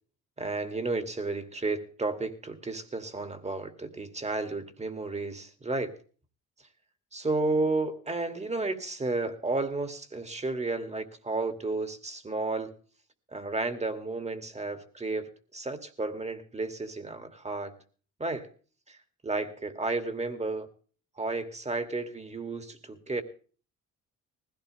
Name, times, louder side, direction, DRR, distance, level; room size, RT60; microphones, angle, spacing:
voice 1, 0.4-6.0 7.1-12.7 13.3-17.7 18.2-18.5 18.9-19.0 19.2-20.7 21.2-23.2, right 3 dB, 20° right, 9 dB, 2.5 m, -32 dB
20.0 x 16.0 x 3.3 m, 0.41 s
cardioid pair, 90°, 30 cm